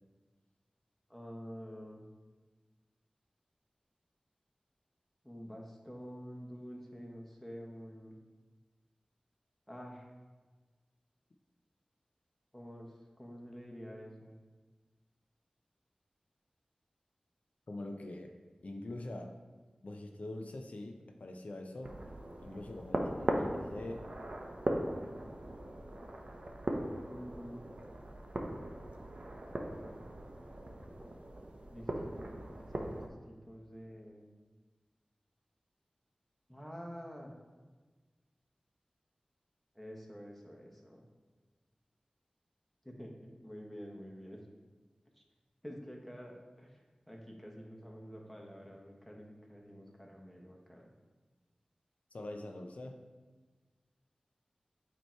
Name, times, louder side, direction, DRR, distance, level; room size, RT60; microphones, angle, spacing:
voice 1, 1.1-2.0 5.2-8.1 9.7-10.1 12.5-12.9 13.2-14.3 27.0-27.6 31.7-34.2 36.5-37.3 39.7-41.0 42.8-43.1 43.4-44.4 45.6-46.8 47.1-50.9, equal, 5° left, -1 dB, 1.3 m, -48 dB
voice 2, 17.7-18.3 18.6-19.4 19.8-21.9 22.4-24.1 52.1-53.0, left 1 dB, 70° left, 3 dB, 0.5 m, -44 dB
sound 1, 21.8-33.1, right 1 dB, 55° right, 0.7 m, -39 dB
8.0 x 3.0 x 4.4 m, 1.3 s
wide cardioid pair, 45°, 2 cm